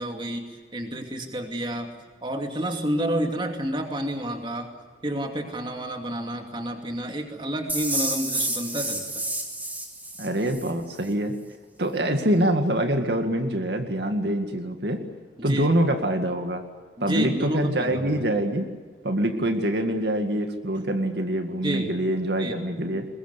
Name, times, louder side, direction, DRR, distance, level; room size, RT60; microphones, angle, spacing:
voice 1, 0.0-1.9 2.2-4.7 5.0-9.2 15.4-15.7 17.0-18.2 21.6-21.9 22.4-22.5, right 1 dB, 25° right, 4 dB, 2.5 m, -30 dB
sound 1, 7.7-10.7, right 1 dB, 10° right, 2.8 m, -29 dB
voice 2, 10.2-11.3 11.8-15.0 15.4-16.6 17.0-18.7 19.0-23.1, right 1 dB, 70° right, 6 dB, 2.1 m, -25 dB
22.0 x 21.5 x 8.3 m, 1.4 s
head